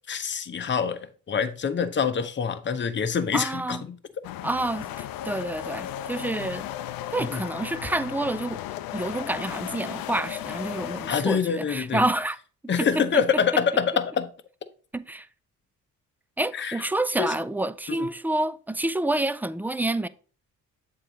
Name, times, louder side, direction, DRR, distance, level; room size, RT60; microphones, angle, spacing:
voice 1, 0.1-4.0 7.2-7.4 11.1-12.0 12.7-14.3 16.5-16.8 17.2-17.3 17.9-18.1, left 7 dB, 35° left, 0.8 m, -26 dB
voice 2, 3.3-3.8 4.4-6.7 7.1-8.6 8.9-12.4 12.8-13.0 14.9-15.3 16.4-20.1, right 2 dB, 5° right, 0.3 m, -28 dB
sound 1, 4.2-11.2, left 12 dB, 80° left, 0.5 m, -35 dB
7.5 x 3.7 x 4.0 m
supercardioid pair, 65°, 35 cm